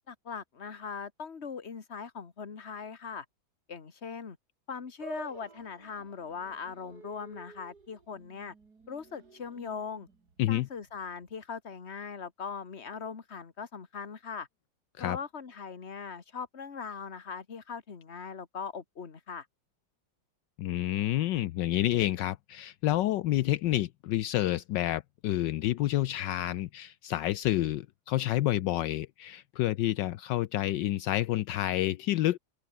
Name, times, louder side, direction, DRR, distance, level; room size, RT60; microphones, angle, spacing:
voice 1, 0.1-3.3 3.7-4.4 4.7-8.5 8.9-10.1 10.5-14.5 15.0-19.5, left 6 dB, 35° left, 1.9 m, -40 dB
sound 1, 5.0-11.4, right 4 dB, 55° right, 3.4 m, -51 dB
voice 2, 20.6-32.4, left 14 dB, 75° left, 1.3 m, -29 dB
open air
omnidirectional pair, 2.1 m